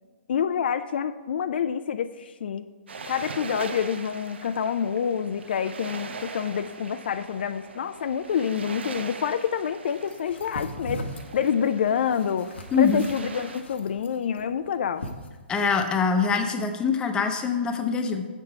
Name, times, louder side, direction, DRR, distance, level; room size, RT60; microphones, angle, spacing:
voice 1, 0.3-2.7 3.1-11.0 11.3-12.5 12.8-15.0, left 7 dB, 60° left, 11 dB, 0.3 m, -27 dB
sound 1, 2.9-13.6, right 4 dB, 80° right, 0.7 m, -41 dB
sound 2, 10.0-15.9, left 1 dB, 85° left, 1.0 m, -39 dB
voice 2, 12.7-13.0 15.5-18.3, left 5 dB, 15° left, 6 dB, 0.7 m, -24 dB
7.1 x 6.7 x 4.6 m, 1.4 s
hypercardioid pair, 140°, 6 cm